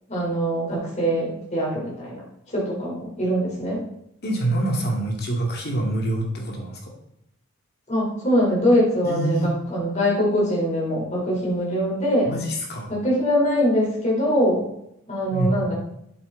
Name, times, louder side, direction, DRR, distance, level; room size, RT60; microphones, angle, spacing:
voice 1, 0.1-2.2 2.5-3.8 7.9-12.3 12.9-14.7 15.1-15.7, equal, 30° left, -5 dB, 4.0 m, -22 dB
voice 2, 4.2-6.9 9.0-9.5 12.3-12.9 15.3-15.6, right 1 dB, 50° left, 1 dB, 2.3 m, -25 dB
8.0 x 7.9 x 4.0 m, 0.76 s
head